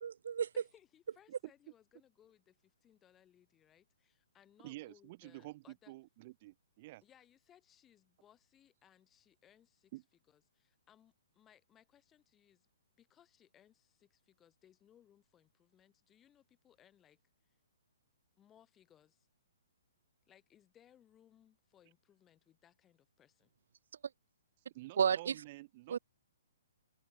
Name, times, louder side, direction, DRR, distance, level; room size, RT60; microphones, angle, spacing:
voice 1, 0.0-0.5 25.0-25.3 25.9-26.0, right 7 dB, 65° right, 0.6 m, -31 dB
voice 2, 0.5-5.9 7.0-9.9 10.3-12.7 13.0-17.2 18.4-19.3 20.3-23.5, left 10 dB, 15° left, 6.2 m, -67 dB
voice 3, 4.6-7.0 9.9-10.0 24.7-26.0, right 19 dB, 30° right, 2.5 m, -50 dB
hypercardioid pair, 165°, 0 cm